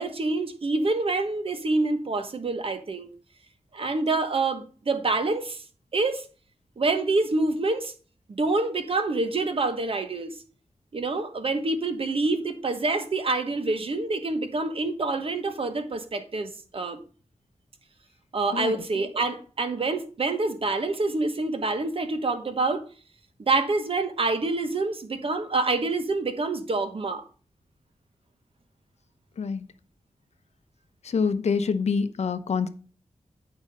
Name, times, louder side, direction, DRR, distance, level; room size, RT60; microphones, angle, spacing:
voice 1, 0.0-3.1 3.7-5.6 5.9-6.3 6.8-7.9 8.3-10.3 10.9-17.0 18.3-22.8 23.4-27.2, right 3 dB, 55° right, 1.2 m, -26 dB
voice 2, 31.0-32.7, left 5 dB, 70° left, 0.7 m, -26 dB
8.2 x 5.2 x 5.3 m
wide cardioid pair, 105°, 12 cm